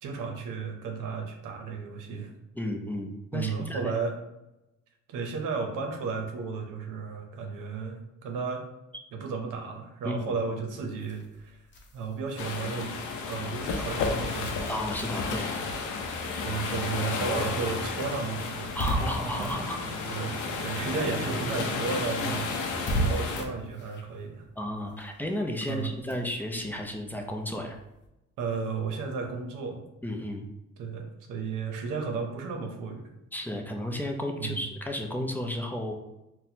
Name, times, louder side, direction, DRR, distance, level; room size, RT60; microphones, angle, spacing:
voice 1, 0.0-2.3 3.3-4.2 5.1-8.7 9.1-11.6 11.9-12.9 13.3-14.6 16.4-18.8 20.1-22.6 23.0-24.4 25.7-25.9 28.4-29.8 30.8-33.1 34.4-34.7, right 4 dB, 90° right, 3 dB, 0.7 m, -33 dB
voice 2, 2.6-3.9 10.0-10.2 14.7-15.5 18.7-19.8 22.2-22.3 24.6-27.8 30.0-30.4 33.3-35.9, left 1 dB, 5° left, 2 dB, 0.5 m, -33 dB
sound 1, 10.9-20.8 21.1-28.1, right 1 dB, 40° left, 0.7 m, -38 dB
sound 2, 12.4-23.4, left 4 dB, 80° left, 0.6 m, -32 dB
sound 3, 18.9-23.8, right 2 dB, 50° right, 0.5 m, -42 dB
4.1 x 2.2 x 2.7 m, 0.93 s
cardioid pair, 90°, 30 cm